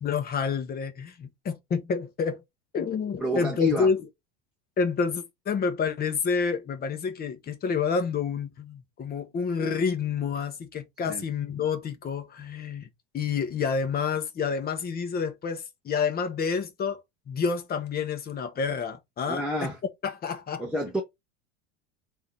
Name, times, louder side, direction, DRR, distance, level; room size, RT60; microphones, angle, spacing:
voice 1, 0.0-2.4 2.7-4.1 4.8-12.9 13.1-17.0 17.3-19.4 20.0-20.6, left 5 dB, 30° left, 1.1 m, -29 dB
voice 2, 3.2-3.9 11.0-11.2 19.3-19.8 20.6-21.0, left 1 dB, ahead, 0.8 m, -28 dB
3.6 x 2.8 x 4.6 m
hypercardioid pair, 105°, 33 cm